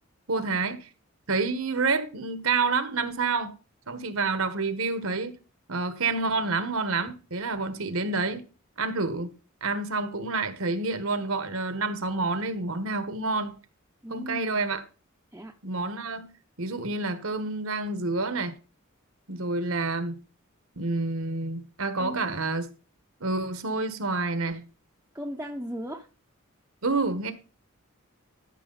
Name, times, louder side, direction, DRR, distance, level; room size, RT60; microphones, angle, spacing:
voice 1, 0.3-0.8 1.3-3.5 3.9-5.4 5.7-8.4 8.8-9.3 9.6-13.6 14.1-14.8 15.6-16.3 16.6-18.6 19.3-20.2 20.8-22.7 23.2-24.6 26.8-27.3, right 3 dB, 75° right, 1.4 m, -28 dB
voice 2, 14.0-14.6 15.3-15.5 22.0-22.3 25.1-26.1, equal, 10° right, 0.8 m, -37 dB
13.0 x 6.2 x 4.0 m
head